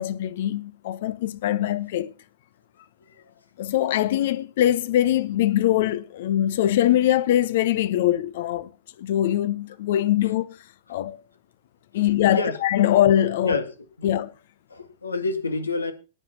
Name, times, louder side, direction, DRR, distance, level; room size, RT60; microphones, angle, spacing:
voice 1, 0.0-2.1 3.6-8.7 9.0-10.6 10.9-11.2 11.9-13.6 14.0-14.3, left 12 dB, 55° left, 0.9 m, -22 dB
voice 2, 11.9-12.6 13.4-13.7 14.0-14.2 14.7-15.9, left 3 dB, 80° left, 1.7 m, -28 dB
17.5 x 5.9 x 5.6 m
figure-of-eight pair, 95°, 0 cm